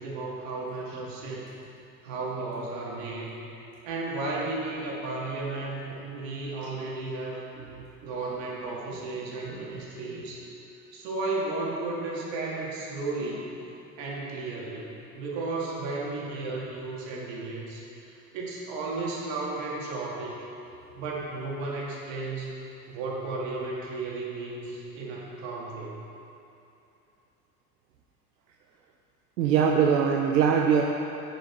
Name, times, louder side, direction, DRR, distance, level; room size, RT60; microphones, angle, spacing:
voice 1, 0.0-1.4 2.0-3.3 3.8-7.4 8.0-10.4 10.9-13.5 14.0-17.8 18.1-20.3 21.0-22.5 22.9-26.0, right 3 dB, 60° right, -3 dB, 2.1 m, -34 dB
voice 2, 29.4-30.8, right 7 dB, 85° right, 1 dB, 0.7 m, -21 dB
10.0 x 5.4 x 4.6 m, 2.9 s
hypercardioid pair, 65°, 50 cm